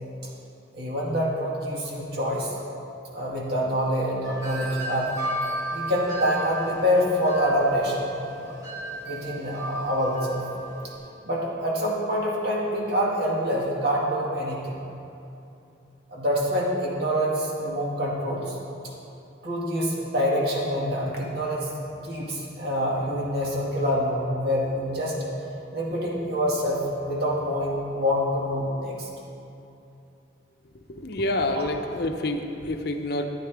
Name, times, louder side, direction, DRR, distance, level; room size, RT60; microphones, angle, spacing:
voice 1, 0.7-2.5 3.1-5.1 5.7-8.1 8.4-8.5 9.0-10.4 11.2-14.8 16.1-18.6 19.4-21.7 22.0-25.2 25.7-29.1 31.5-31.6, equal, 55° right, -4 dB, 2.1 m, -26 dB
Wind chime, 4.2-11.0, right 1 dB, 20° right, 1.6 m, -34 dB
voice 2, 30.9-33.3, left 1 dB, 55° left, 5 dB, 0.7 m, -28 dB
14.0 x 9.5 x 3.5 m, 2.8 s
head